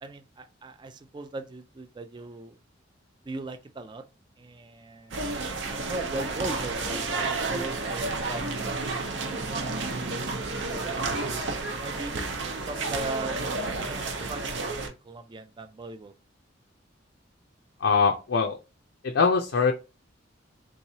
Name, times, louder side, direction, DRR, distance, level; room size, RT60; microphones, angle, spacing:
voice 1, 0.0-2.6 3.3-4.0 4.4-5.4 5.6-9.9 10.7-11.0 11.7-12.2 12.6-13.4 13.8-16.1, right 2 dB, 25° right, 0.3 m, -39 dB
sound 1, 5.1-14.9, right 3 dB, 70° right, 0.7 m, -31 dB
voice 2, 17.8-18.6 19.0-19.7, left 5 dB, 80° left, 0.5 m, -22 dB
3.6 x 3.0 x 2.7 m
head